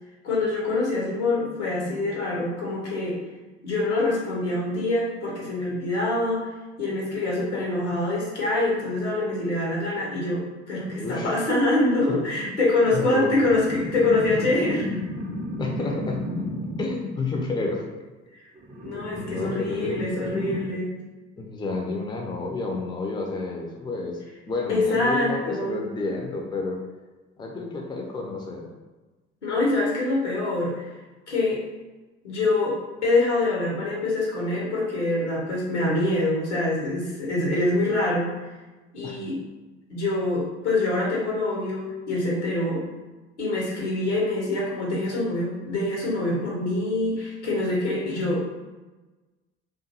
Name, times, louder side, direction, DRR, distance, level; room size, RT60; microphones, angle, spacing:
voice 1, 0.2-3.2 3.6-6.5 6.8-10.4 10.7-14.9 18.8-20.9 24.7-25.8 29.4-30.9 31.3-31.6 32.2-32.8 33.0-38.5 38.9-39.4 39.9-42.8 43.4-48.4, left 2 dB, 80° left, -4 dB, 0.9 m, -25 dB
voice 2, 10.9-11.3 12.0-12.5 12.9-13.4 15.6-16.2 16.8-17.8 19.1-20.0 21.4-24.2 24.5-26.8 27.4-28.7 39.0-39.1, left 3 dB, 15° left, 1 dB, 0.5 m, -30 dB
sound 1, 13.4-17.0 18.6-20.7, left 1 dB, 25° right, 0.6 m, -33 dB
2.5 x 2.4 x 2.7 m, 1.2 s
figure-of-eight pair, 55°, 34 cm